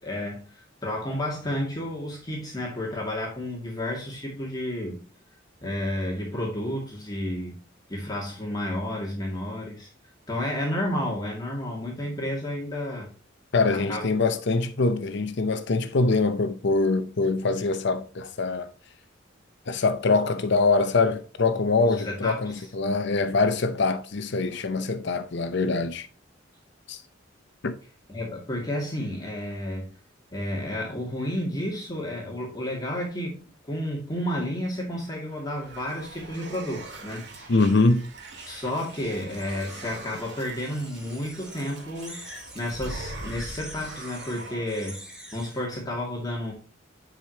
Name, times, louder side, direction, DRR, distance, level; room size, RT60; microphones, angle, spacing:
voice 1, 0.0-5.0 5.6-7.6 7.9-9.9 10.3-13.1 13.7-14.0 21.8-22.7 28.1-29.9 30.3-37.5 38.5-42.3 42.5-45.0 45.3-46.5, left 1 dB, 20° left, 2.2 m, -31 dB
voice 2, 13.5-18.7 19.7-26.1 26.9-27.0 27.6-27.7 37.5-38.1, left 3 dB, 65° left, 0.7 m, -24 dB
sound 1, 35.0-45.0, right 2 dB, 60° right, 2.1 m, -42 dB
sound 2, 37.7-40.2 40.5-45.7, equal, 5° right, 1.7 m, -47 dB
10.5 x 5.0 x 2.9 m
head